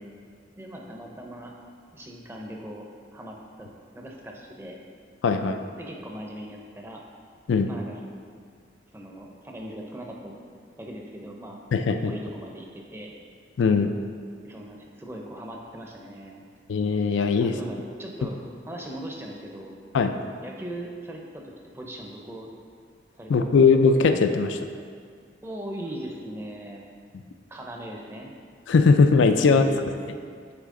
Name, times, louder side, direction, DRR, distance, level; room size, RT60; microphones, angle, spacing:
voice 1, 0.5-1.5 1.9-2.9 3.1-4.8 5.8-7.0 7.7-7.9 8.9-11.6 12.0-13.1 14.4-16.4 17.4-18.4 18.6-19.7 20.4-22.5 23.2-23.5 25.4-26.9 27.5-28.3 29.4-30.2, right 1 dB, 15° right, 0 dB, 0.6 m, -39 dB
voice 2, 5.2-5.6 7.5-7.7 11.7-12.1 13.6-13.9 16.7-17.6 19.9-20.1 23.3-24.6 28.7-29.6, left 4 dB, 80° left, 7 dB, 0.4 m, -19 dB
8.9 x 4.0 x 3.7 m, 2.1 s
head